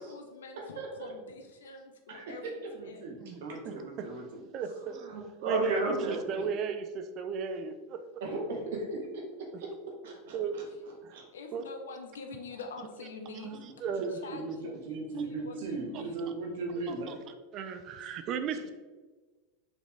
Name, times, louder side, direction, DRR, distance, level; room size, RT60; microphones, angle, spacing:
voice 1, 0.0-3.1 11.1-13.5 14.1-16.2, left 4 dB, 75° left, 5 dB, 0.9 m, -46 dB
voice 2, 0.8-1.1 2.1-4.4 4.9-6.2 8.2-9.7 10.0-10.4 11.1-11.3 14.0-14.6 14.9-17.1, right 2 dB, 65° right, 0 dB, 1.8 m, -36 dB
voice 3, 3.2-4.1 4.5-5.0 5.4-5.8 6.1-8.2 9.5-9.6 10.3-10.7 11.0-11.2 11.5-11.6 13.3-14.2 15.9-16.0 16.9-17.2 17.5-18.7, right 6 dB, 45° right, 10 dB, 0.6 m, -36 dB
6.1 x 5.1 x 3.6 m, 1.3 s
figure-of-eight pair, 85°, 0 cm